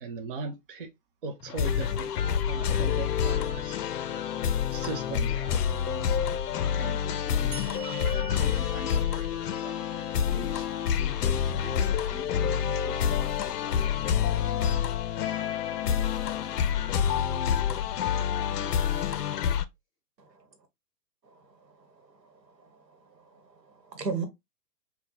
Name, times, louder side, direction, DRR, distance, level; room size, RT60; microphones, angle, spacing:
voice 1, 0.0-0.9 1.2-2.1 2.5-3.8 4.7-5.3, right 4 dB, 35° right, 0.5 m, -37 dB
sound 1, 1.4-19.6, left 8 dB, 70° left, 0.5 m, -28 dB
voice 2, 5.1-5.6 6.8-7.6 8.1-13.7, equal, 15° left, 0.5 m, -46 dB
sound 2, 7.5-10.9, right 7 dB, 50° right, 1.0 m, -46 dB
voice 3, 21.2-24.3, right 5 dB, 90° right, 1.1 m, -39 dB
3.7 x 2.2 x 2.6 m
hypercardioid pair, 135°, 49 cm